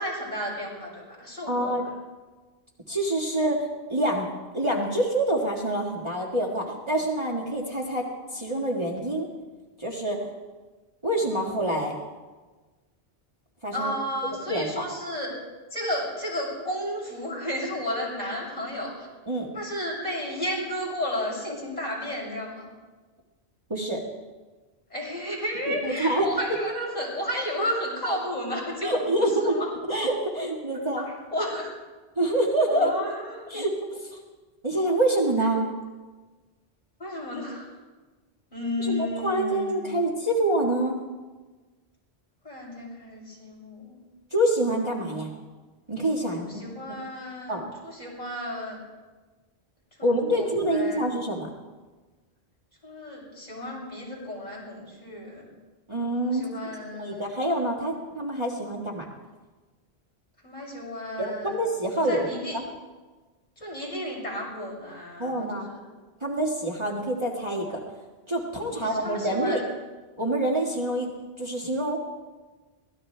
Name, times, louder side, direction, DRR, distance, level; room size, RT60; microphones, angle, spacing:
voice 1, 0.0-1.7 13.7-15.3 15.7-19.1 19.5-22.7 24.9-29.7 31.0-31.7 32.7-33.5 37.0-37.8 38.5-40.0 42.4-44.0 46.4-47.6 47.8-48.8 50.0-51.1 52.8-55.5 56.2-57.3 60.4-61.6 62.1-62.6 63.6-65.8 68.7-69.6, left 1 dB, 40° left, -5 dB, 6.9 m, -33 dB
voice 2, 1.5-1.8 2.9-8.0 8.3-9.3 9.8-10.3 11.0-11.9 13.6-13.9 14.5-14.8 19.3-19.5 23.7-24.0 25.7-26.3 28.1-28.2 28.8-29.6 29.9-31.1 32.2-32.9 33.5-34.2 34.6-35.7 38.8-41.0 44.3-45.3 45.9-46.7 47.5-47.6 50.0-51.5 55.9-56.4 57.0-59.0 61.2-62.3 62.5-62.6 65.2-65.7 66.2-67.8 68.3-69.6 70.2-71.1 71.4-72.0, right 1 dB, 25° right, -3 dB, 1.8 m, -26 dB
23.5 x 18.0 x 3.4 m, 1.3 s
omnidirectional pair, 1.1 m